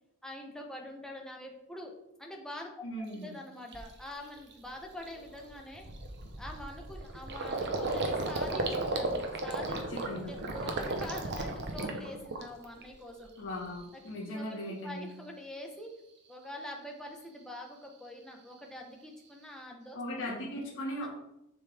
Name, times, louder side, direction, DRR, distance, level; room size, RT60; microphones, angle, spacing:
voice 1, 0.2-1.9 2.2-2.7 3.0-5.9 6.4-13.3 13.9-16.0 16.3-20.4 21.0-21.1, left 1 dB, 5° left, 1 dB, 1.0 m, -45 dB
voice 2, 2.8-3.3 9.7-10.3 13.4-15.1 19.9-21.1, left 1 dB, 60° left, -6 dB, 1.6 m, -38 dB
Gurgling, 3.1-3.2 3.7-4.0 4.4-4.5 4.8-12.8 13.2-13.8, right 2 dB, 50° right, 0.9 m, -35 dB
6.9 x 5.5 x 3.6 m, 0.85 s
head